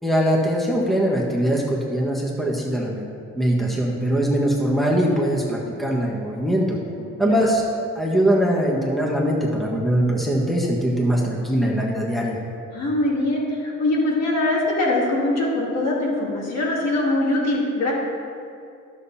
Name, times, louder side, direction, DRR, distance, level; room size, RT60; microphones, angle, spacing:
voice 1, 0.0-3.0 3.3-6.8 7.2-7.6 7.9-12.4, equal, ahead, -3 dB, 1.5 m, -21 dB
voice 2, 12.7-17.9, left 2 dB, 60° left, -4 dB, 2.7 m, -22 dB
11.0 x 7.2 x 4.3 m, 2.4 s
cardioid pair, 90°, 30 cm